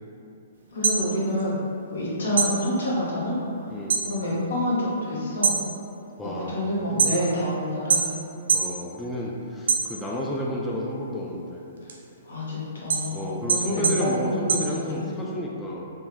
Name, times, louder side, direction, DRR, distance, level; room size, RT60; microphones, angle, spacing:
sound 1, 0.6-2.0 2.3-4.1 4.5-4.9 5.3-7.5 7.9-8.8 9.1-10.3 10.8-15.3, right 5 dB, 75° right, 0.5 m, -25 dB
voice 1, 0.7-1.6 1.9-3.3 4.0-5.5 6.2-8.1 12.2-15.2, left 1 dB, 80° left, -6 dB, 1.0 m, -28 dB
voice 2, 6.2-6.6 6.9-7.2 8.5-11.6 13.1-15.9, left 1 dB, 10° left, -4 dB, 0.3 m, -31 dB
3.6 x 2.0 x 2.9 m, 2.6 s
hypercardioid pair, 130°, 0 cm